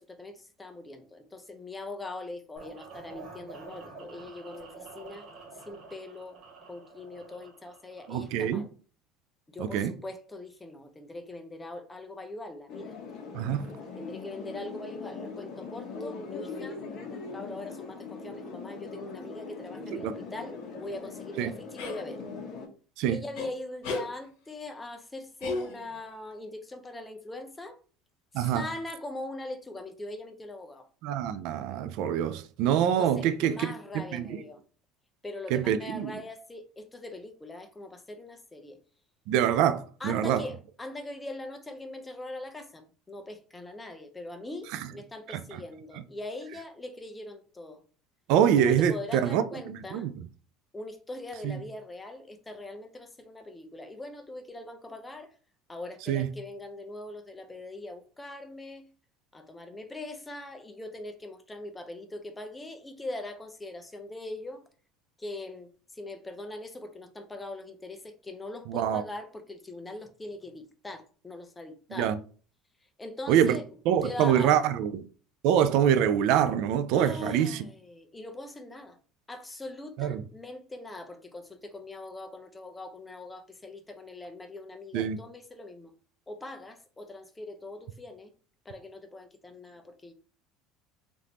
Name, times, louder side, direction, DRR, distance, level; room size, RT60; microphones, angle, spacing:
voice 1, 0.0-5.3 5.7-6.4 6.7-8.7 9.5-13.0 14.0-16.8 17.0-22.2 23.1-27.8 28.3-30.9 32.8-34.6 35.2-38.8 40.0-47.8 48.6-50.1 50.7-55.3 55.7-58.9 59.3-64.6 65.2-72.2 73.0-73.7 74.0-74.6 76.9-79.0 79.3-85.9 86.3-88.3 88.7-90.1, left 2 dB, 10° left, 0.5 m, -41 dB
sound 1, 2.6-8.5, right 3 dB, 35° right, 1.3 m, -48 dB
voice 2, 8.1-8.6 9.6-9.9 13.3-13.7 19.9-20.1 21.4-21.5 23.0-23.2 28.3-28.7 31.0-33.7 34.1-34.4 35.5-36.2 39.3-40.4 44.7-44.9 45.3-45.6 48.3-50.1 51.4-51.6 56.1-56.3 68.7-69.0 71.9-72.2 73.3-73.6 73.9-75.0 75.4-77.7 80.0-80.2 84.9-85.2, right 9 dB, 65° right, 0.3 m, -25 dB
sound 2, 12.7-22.7, left 4 dB, 40° left, 1.0 m, -41 dB
sound 3, 21.8-22.0 23.4-23.5 23.8-24.1 25.4-26.1, left 3 dB, 70° left, 1.0 m, -34 dB
3.4 x 2.5 x 2.9 m
cardioid pair, 140°, 0 cm